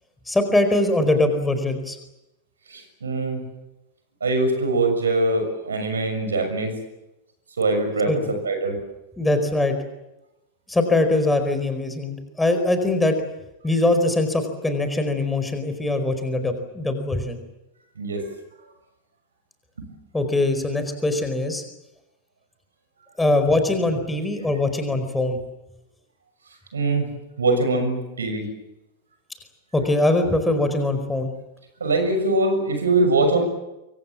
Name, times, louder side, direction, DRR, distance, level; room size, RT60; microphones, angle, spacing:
voice 1, 0.3-2.0 8.1-8.2 9.2-9.7 10.7-13.1 13.6-17.4 20.1-21.6 23.2-25.4 29.7-31.3, left 2 dB, 10° left, 7 dB, 4.7 m, -22 dB
voice 2, 2.7-3.4 4.2-6.8 7.6-8.8 18.0-18.3 19.8-19.9 26.7-27.1 27.4-28.5 31.8-33.4, right 2 dB, 70° right, 7 dB, 6.7 m, -22 dB
27.0 x 24.5 x 7.6 m, 0.93 s
figure-of-eight pair, 90°, 0 cm